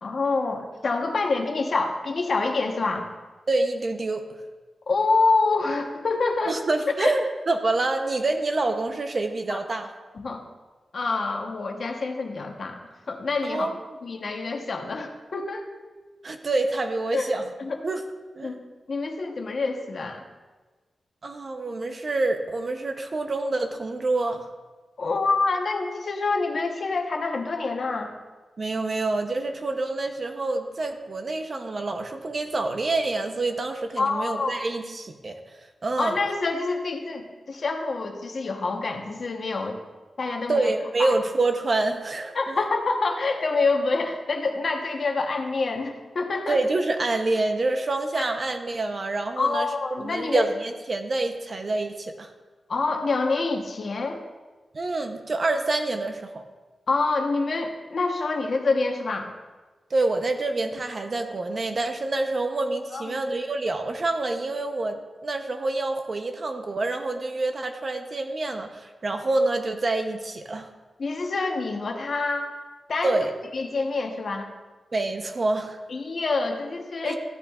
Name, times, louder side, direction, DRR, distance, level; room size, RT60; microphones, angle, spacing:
voice 1, 0.0-3.1 4.9-6.6 7.0-7.1 9.5-9.6 10.1-10.4 10.9-12.8 13.1-13.7 14.0-15.6 17.1-17.3 17.6-17.8 18.4-18.6 18.9-20.2 25.0-28.1 34.0-34.6 36.0-39.8 40.2-40.7 41.0-41.1 42.3-46.6 49.4-50.5 52.7-54.2 56.9-59.3 62.9-63.2 71.0-72.5 72.9-73.2 73.5-74.5 75.9-77.2, left 3 dB, 50° left, 3 dB, 1.0 m, -26 dB
voice 2, 3.5-4.2 6.5-9.9 13.4-13.7 16.2-17.5 17.8-18.0 18.4-18.5 21.2-24.5 28.6-35.4 35.8-36.2 40.5-42.6 46.5-49.7 50.0-52.3 54.7-56.4 59.9-70.7 73.0-73.3 74.9-75.8 77.0-77.2, right 2 dB, 35° right, 6 dB, 0.7 m, -27 dB
14.0 x 9.8 x 2.4 m, 1.3 s
wide cardioid pair, 170°, 0 cm